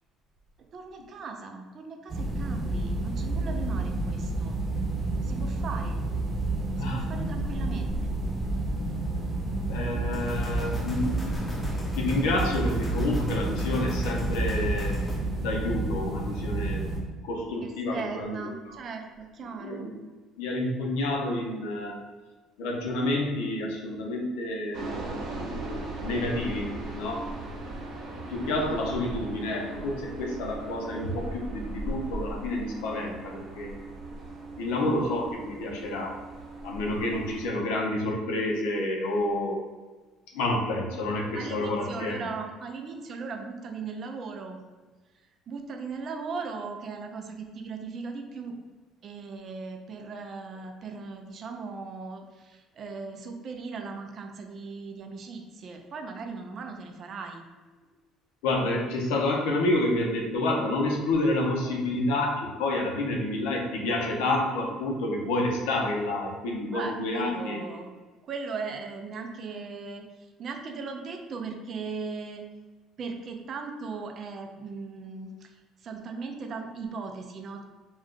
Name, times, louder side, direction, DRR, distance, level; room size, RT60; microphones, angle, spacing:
voice 1, 0.6-4.6 5.2-6.0 6.8-8.1 17.6-19.9 28.4-28.8 34.7-34.9 41.3-44.6 45.1-48.6 49.0-57.4 66.7-67.9 68.2-72.4 73.0-77.6, right 4 dB, 50° right, 4 dB, 0.4 m, -38 dB
sound 1, 2.1-17.0, right 2 dB, 30° right, 0.8 m, -30 dB
voice 2, 6.7-7.1 9.7-15.0 15.4-16.8 17.2-18.4 18.7-18.8 19.6-19.9 20.4-22.0 22.6-24.9 26.0-27.3 28.0-33.7 34.6-36.2 36.6-39.6 40.3-42.2 58.4-67.6, left 1 dB, 85° left, 0 dB, 0.6 m, -29 dB
sound 2, 10.1-15.2, right 1 dB, 15° left, 0.8 m, -35 dB
sound 3, 24.7-37.5, right 2 dB, 75° right, 1.0 m, -38 dB
2.5 x 2.3 x 3.6 m, 1.3 s
supercardioid pair, 80°, 0 cm